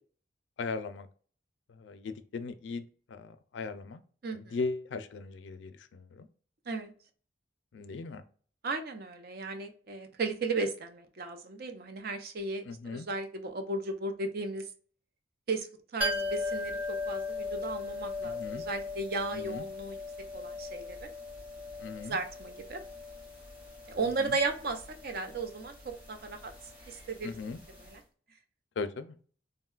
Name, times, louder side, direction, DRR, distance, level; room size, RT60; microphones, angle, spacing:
voice 1, 0.6-1.1 1.7-4.0 4.3-6.3 7.7-8.2 12.7-13.1 18.2-18.6 19.3-19.6 21.8-22.2 24.2-24.4 27.2-27.6 28.8-29.2, left 4 dB, 75° left, 11 dB, 0.4 m, -38 dB
voice 2, 4.2-4.6 6.7-6.9 8.6-14.6 15.5-20.0 20.3-21.1 22.0-22.8 23.9-26.5 26.9-27.4 27.7-28.0, right 3 dB, 55° right, 6 dB, 0.6 m, -35 dB
sound 1, 16.0-27.6 27.9-28.0, left 2 dB, 10° right, 0.9 m, -38 dB
3.6 x 2.2 x 2.3 m, 0.43 s
head